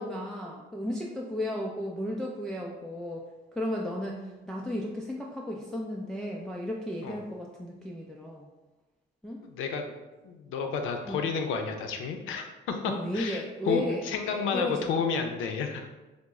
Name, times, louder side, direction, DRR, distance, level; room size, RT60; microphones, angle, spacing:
voice 1, 0.0-3.2 3.5-8.5 9.2-9.4 11.1-11.2 12.9-15.0, left 1 dB, 5° left, -2 dB, 0.3 m, -34 dB
voice 2, 9.4-9.9 10.2-15.9, left 5 dB, 90° left, 5 dB, 0.4 m, -31 dB
2.9 x 2.0 x 3.5 m, 1.1 s
cardioid pair, 90°, 20 cm